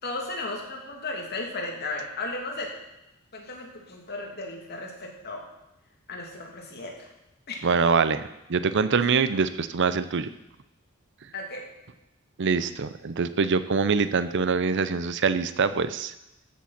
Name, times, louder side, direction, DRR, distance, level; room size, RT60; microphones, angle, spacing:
voice 1, 0.0-2.7 3.3-5.4 6.1-6.9 7.5-7.8 11.3-11.7, left 2 dB, 50° left, 0 dB, 2.8 m, -35 dB
voice 2, 7.6-10.3 12.4-16.1, right 5 dB, 55° right, 13 dB, 0.6 m, -24 dB
14.5 x 7.4 x 5.9 m, 0.93 s
head